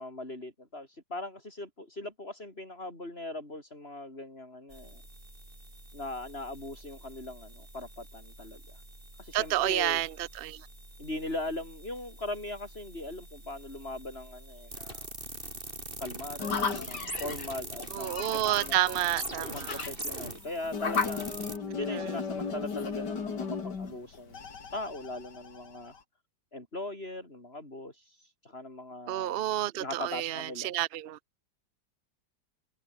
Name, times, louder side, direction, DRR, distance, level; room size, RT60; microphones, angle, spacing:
voice 1, 0.0-5.0 5.9-8.8 9.2-10.0 11.0-15.1 16.0-18.8 19.5-24.4 24.7-25.9 26.5-29.4 29.8-30.7, left 2 dB, 30° left, 7.3 m, -40 dB
sound 1, 4.7-21.6, right 1 dB, 25° right, 7.6 m, -43 dB
voice 2, 9.3-10.1 10.4-10.6 17.9-19.8 21.9-22.0 29.1-31.2, right 14 dB, 60° right, 0.6 m, -30 dB
sound 2, 16.4-26.0, left 5 dB, 65° left, 3.1 m, -36 dB
omnidirectional pair, 2.0 m